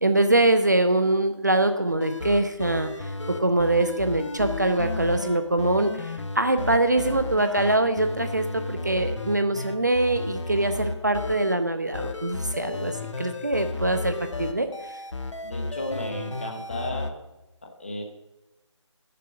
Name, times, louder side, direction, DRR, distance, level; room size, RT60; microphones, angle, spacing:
voice 1, 0.0-14.7, right 2 dB, 35° right, 8 dB, 0.5 m, -23 dB
sound 1, 1.9-11.6 11.9-17.1, left 2 dB, 70° left, 0.9 m, -33 dB
voice 2, 15.4-17.2 17.6-18.0, left 1 dB, 25° left, 1 dB, 1.0 m, -34 dB
8.7 x 6.8 x 6.2 m, 1.0 s
figure-of-eight pair, 175°, 16 cm